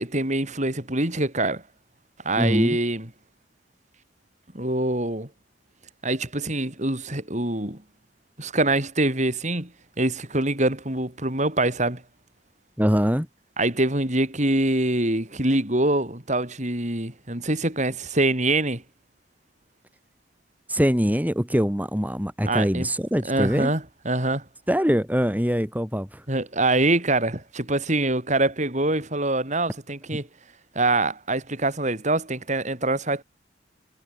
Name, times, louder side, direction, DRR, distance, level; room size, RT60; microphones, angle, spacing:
voice 1, 0.0-1.6 2.2-3.1 4.5-5.3 6.0-7.8 8.4-9.7 10.0-12.0 13.6-18.8 22.4-22.9 23.3-24.4 26.3-30.3 30.7-33.2, right 2 dB, 40° right, 5.1 m, -24 dB
voice 2, 2.4-2.8 12.8-13.3 20.7-23.7 24.7-26.2 30.1-30.2, equal, 10° right, 4.9 m, -23 dB
head